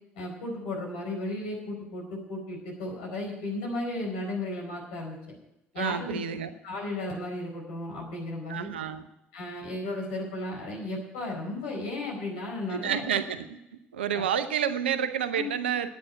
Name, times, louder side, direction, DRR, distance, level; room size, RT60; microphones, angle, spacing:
voice 1, 0.1-5.3 5.7-6.2 6.6-8.7 9.3-13.0 14.1-14.2 15.3-15.5, left 2 dB, 70° left, -1 dB, 4.6 m, -34 dB
voice 2, 5.8-6.5 8.5-9.1 12.7-13.6 13.9-15.9, right 8 dB, 80° right, 11 dB, 0.8 m, -29 dB
10.5 x 9.1 x 8.2 m, 0.86 s
figure-of-eight pair, 55°, 6 cm